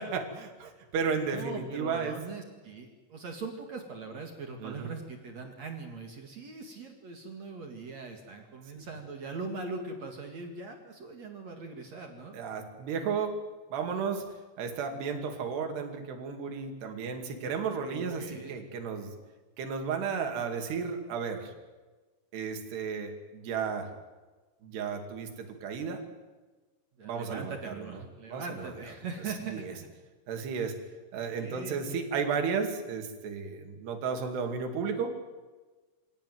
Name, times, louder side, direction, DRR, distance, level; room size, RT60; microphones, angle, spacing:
voice 1, 0.0-2.2 4.6-4.9 8.8-8.9 12.3-13.4 13.7-14.3 14.6-19.1 19.6-21.5 22.3-23.9 24.6-26.0 27.0-28.0 28.3-28.7 29.5-29.7 30.3-30.8 31.1-35.2, right 5 dB, 65° right, 5 dB, 4.3 m, -33 dB
voice 2, 1.3-12.4 17.8-18.5 27.0-29.7 30.5-30.7 31.4-31.8, right 4 dB, 45° right, 3 dB, 2.5 m, -41 dB
26.0 x 17.5 x 9.4 m, 1.3 s
omnidirectional pair, 5.5 m